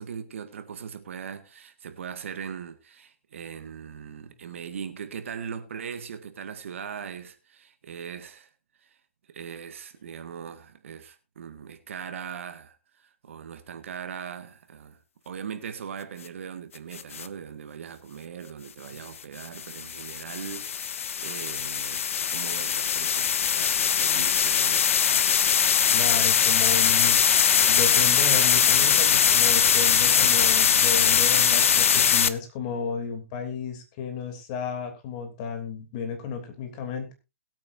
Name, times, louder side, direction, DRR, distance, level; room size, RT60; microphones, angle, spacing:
voice 1, 0.0-8.5 8.8-9.0 9.3-15.0 15.3-24.9, right 7 dB, 65° right, 1.8 m, -40 dB
sound 1, 16.9-17.3 19.4-32.3, left 8 dB, 65° left, 1.0 m, -21 dB
voice 2, 25.8-27.2 27.7-37.1, left 6 dB, 35° left, 3.1 m, -33 dB
21.0 x 8.7 x 2.7 m
hypercardioid pair, 150°, 8 cm